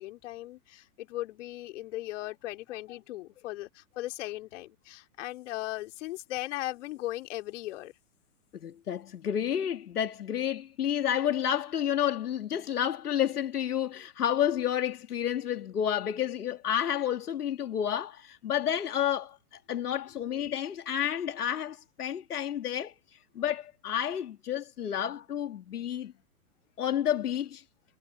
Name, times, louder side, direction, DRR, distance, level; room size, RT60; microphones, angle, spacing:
voice 1, 0.0-7.9, left 16 dB, 50° left, 4.3 m, -38 dB
voice 2, 8.5-26.1 26.8-27.6, left 10 dB, 80° left, 2.1 m, -30 dB
hypercardioid pair, 130°, 45 cm